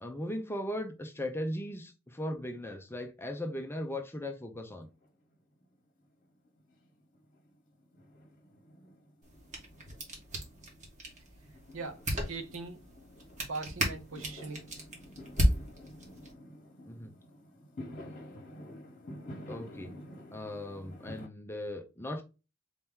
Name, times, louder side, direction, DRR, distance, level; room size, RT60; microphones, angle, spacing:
voice 1, 0.0-4.9 16.9-17.1 19.5-19.9 20.3-22.2, left 1 dB, 10° left, 0.6 m, -38 dB
Fireworks, 4.8-5.8 6.0-21.3, left 1 dB, 40° left, 1.3 m, -50 dB
sound 1, 9.2-16.3, equal, 35° right, 1.5 m, -35 dB
voice 2, 11.7-12.8 13.5-14.6, right 3 dB, 80° right, 0.9 m, -40 dB
4.3 x 2.9 x 3.6 m
head